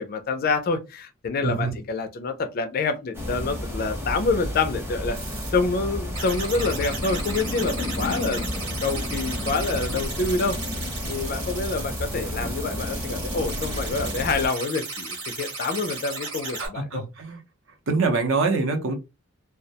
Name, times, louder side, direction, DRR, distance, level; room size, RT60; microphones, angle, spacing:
voice 1, 0.0-5.2 5.5-8.5 8.8-10.6 11.1-17.0, left 3 dB, 45° left, 0.3 m, -27 dB
sound 1, 3.1-14.5, left 1 dB, 10° right, 0.6 m, -31 dB
sound 2, 5.1-5.5 6.1-16.7, right 3 dB, 85° right, 1.2 m, -35 dB
voice 2, 16.6-17.4 17.9-18.9, right 3 dB, 65° right, 0.6 m, -24 dB
2.3 x 2.1 x 2.7 m
head